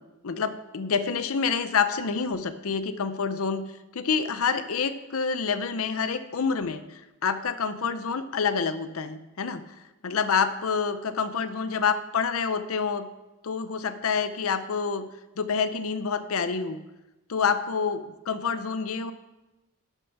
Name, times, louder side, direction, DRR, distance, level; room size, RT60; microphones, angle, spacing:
voice 1, 0.2-9.6 10.0-13.1 13.4-15.1 15.4-16.8 17.3-19.1, left 5 dB, 70° left, 11 dB, 0.6 m, -27 dB
11.5 x 6.7 x 5.9 m, 1.0 s
head